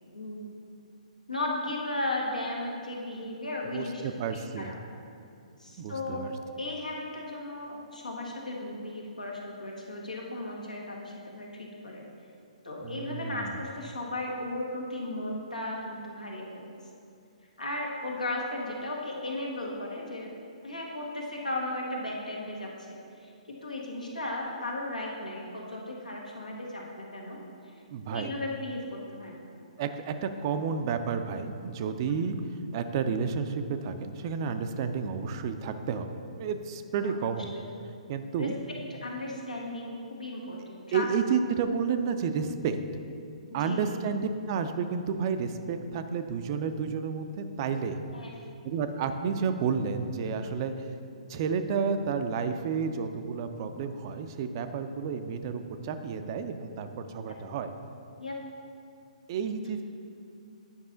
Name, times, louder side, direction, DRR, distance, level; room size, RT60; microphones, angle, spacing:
voice 1, 0.1-0.5 1.3-4.0 4.6-4.8 5.6-6.2 6.6-12.1 12.6-16.7 17.6-20.3 20.6-27.4 28.1-29.4 32.1-32.2 37.0-37.1 38.4-38.5 39.0-40.6 40.9-41.1 43.5-43.8 48.1-48.4 58.2-58.4, left 2 dB, 80° left, -2 dB, 1.5 m, -35 dB
voice 2, 3.7-4.7 5.8-6.3 12.8-13.6 27.9-28.3 29.8-32.4 32.7-37.5 38.1-38.5 40.9-42.8 43.5-48.0 48.6-51.0 51.3-57.7 59.3-59.8, right 6 dB, 35° right, 8 dB, 0.4 m, -31 dB
9.6 x 5.4 x 3.8 m, 2.5 s
figure-of-eight pair, 125°, 4 cm